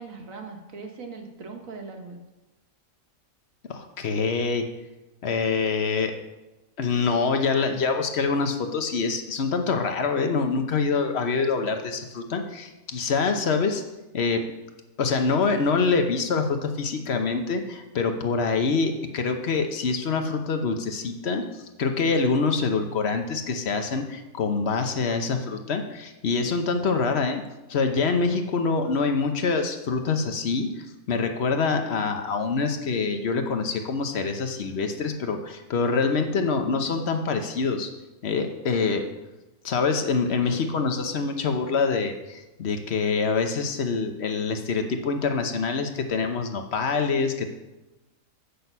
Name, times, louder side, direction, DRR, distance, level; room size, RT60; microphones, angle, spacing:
voice 1, 0.0-2.2, right 4 dB, 65° right, 3 dB, 1.6 m, -40 dB
voice 2, 3.7-4.7 5.2-6.1 6.8-13.8 14.1-14.4 15.0-21.5 21.8-27.4 27.7-37.9 38.2-39.0 39.6-47.5, left 4 dB, 50° left, 6 dB, 1.1 m, -25 dB
8.3 x 6.2 x 5.5 m, 1.1 s
omnidirectional pair, 1.6 m